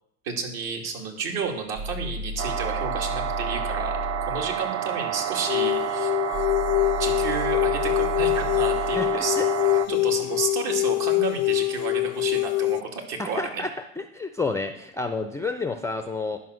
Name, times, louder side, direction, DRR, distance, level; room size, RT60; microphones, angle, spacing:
voice 1, 0.2-4.0 4.2-6.1 7.0-9.4 9.9-13.6, right 5 dB, 60° right, 2 dB, 2.5 m, -31 dB
sound 1, 1.2-4.6 6.3-10.4, left 3 dB, 85° right, 1.7 m, -35 dB
sound 2, 2.4-9.9, right 10 dB, 35° right, 0.7 m, -29 dB
sound 3, 5.5-12.8, left 21 dB, 60° left, 0.5 m, -24 dB
voice 2, 9.0-9.5 10.2-10.3 13.2-13.7 14.0-16.4, left 3 dB, 5° left, 7 dB, 0.4 m, -30 dB
11.0 x 5.5 x 6.3 m, 0.76 s
supercardioid pair, 105°, 41 cm